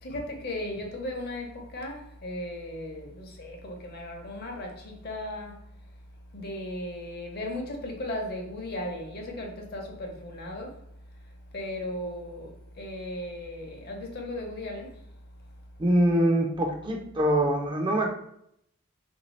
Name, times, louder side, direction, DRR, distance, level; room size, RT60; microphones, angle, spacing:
voice 1, 0.0-5.6 6.3-10.8 11.5-15.0, left 1 dB, 50° left, 0.7 m, -36 dB
voice 2, 15.8-18.1, right 1 dB, 25° right, 0.4 m, -24 dB
3.2 x 2.6 x 3.1 m
head